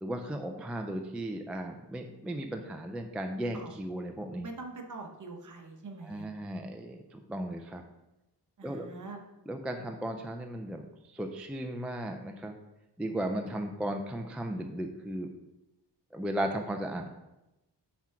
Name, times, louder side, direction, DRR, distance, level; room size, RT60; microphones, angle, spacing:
voice 1, 0.0-4.5 6.0-7.8 8.6-8.9 9.5-12.6 13.0-15.3 16.1-17.1, right 1 dB, 5° right, 4 dB, 0.3 m, -36 dB
voice 2, 4.4-6.3 8.6-9.2, right 3 dB, 45° right, 3 dB, 0.9 m, -43 dB
6.0 x 4.4 x 5.7 m, 0.96 s
wide cardioid pair, 180°, 43 cm